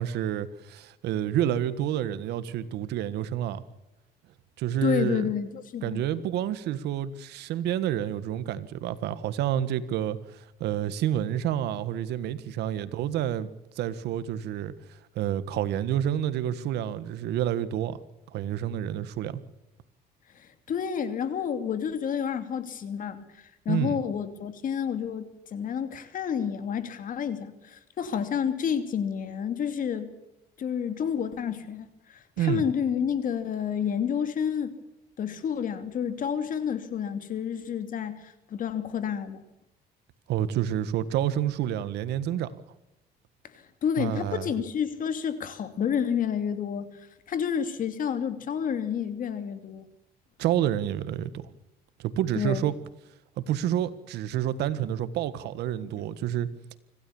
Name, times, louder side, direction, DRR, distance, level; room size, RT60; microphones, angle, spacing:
voice 1, 0.0-3.6 4.6-5.3 5.8-13.5 13.8-18.0 18.3-19.4 23.7-24.0 32.4-32.6 40.3-42.5 44.0-44.5 50.4-51.5 52.0-52.7 53.4-56.5, right 11 dB, 80° right, 1.6 m, -29 dB
voice 2, 4.8-6.0 20.3-30.1 30.6-34.7 35.2-39.4 43.5-49.8 52.3-52.7, left 8 dB, 55° left, 2.8 m, -30 dB
25.5 x 16.0 x 7.2 m
cardioid pair, 110°, 17 cm